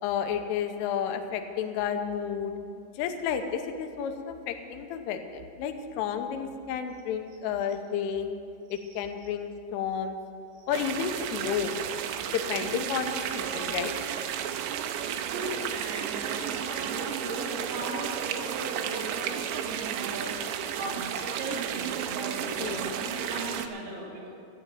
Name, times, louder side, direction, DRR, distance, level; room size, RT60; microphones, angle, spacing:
voice 1, 0.0-2.5 3.0-8.3 8.7-10.2 10.7-11.7 12.3-13.9 22.6-22.9, left 8 dB, 80° left, 6 dB, 3.2 m, -31 dB
voice 2, 8.7-9.0 10.6-10.7 15.3-20.4 20.7-24.3, right 2 dB, 70° right, -5 dB, 5.3 m, -38 dB
sound 1, 10.7-23.7, right 9 dB, 90° right, 2.7 m, -33 dB
14.0 x 7.8 x 8.8 m, 2.4 s
omnidirectional pair, 6.0 m